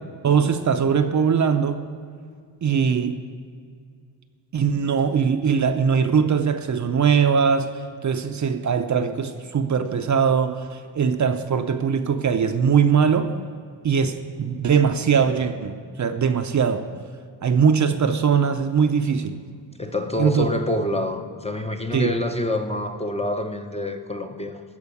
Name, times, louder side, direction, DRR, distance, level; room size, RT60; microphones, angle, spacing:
voice 1, 0.2-1.9 2.6-3.2 4.5-7.7 8.0-13.3 13.8-16.9 17.4-19.4 20.2-20.5 21.9-22.1, right 6 dB, 40° right, 8 dB, 0.6 m, -21 dB
voice 2, 19.8-24.6, left 1 dB, 15° left, 5 dB, 0.6 m, -27 dB
13.5 x 5.0 x 8.4 m, 2.2 s
cardioid pair, 125°, 45 cm